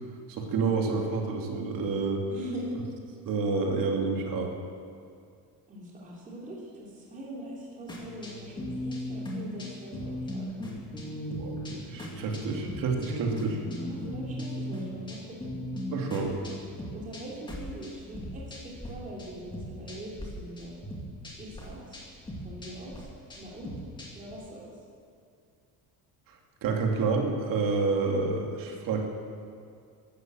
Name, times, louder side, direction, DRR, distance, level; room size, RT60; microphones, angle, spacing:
voice 1, 0.3-2.2 3.3-4.5 11.3-13.6 15.9-16.3 26.3-29.1, right 4 dB, 60° right, 1 dB, 2.5 m, -29 dB
voice 2, 2.3-2.8 5.7-10.5 13.7-15.5 16.9-20.7 21.4-22.0 22.4-23.1 23.4-23.7 24.1-24.6, right 1 dB, 20° right, -5 dB, 3.1 m, -42 dB
sound 1, 7.9-18.9 19.2-20.3 20.6-24.3, left 1 dB, 10° left, 2.3 m, -38 dB
15.0 x 12.0 x 7.7 m, 2.3 s
cardioid pair, 175°, 37 cm